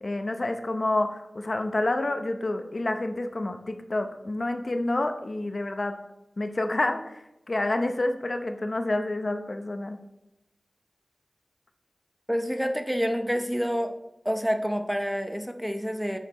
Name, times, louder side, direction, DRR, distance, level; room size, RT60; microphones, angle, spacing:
voice 1, 0.0-5.9 6.4-7.2 7.5-10.0, left 2 dB, 50° left, 6 dB, 0.7 m, -28 dB
voice 2, 12.3-13.9 14.2-16.2, equal, 5° right, 6 dB, 0.7 m, -28 dB
9.1 x 6.6 x 3.0 m, 0.91 s
wide cardioid pair, 80°, 0 cm